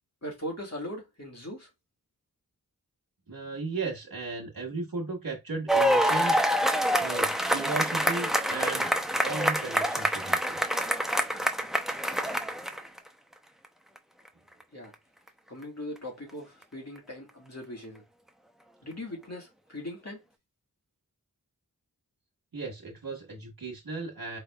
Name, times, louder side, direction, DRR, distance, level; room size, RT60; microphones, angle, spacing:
voice 1, 0.2-1.7 14.7-14.9 15.5-18.0 18.8-20.2, left 1 dB, 45° left, 1.8 m, -39 dB
voice 2, 3.3-8.9 9.2-10.6 22.5-24.4, right 3 dB, 85° right, 1.3 m, -36 dB
sound 1, 5.7-13.0 14.0-14.1, equal, ahead, 0.6 m, -26 dB
4.6 x 3.4 x 2.3 m
wide cardioid pair, 50°, 35 cm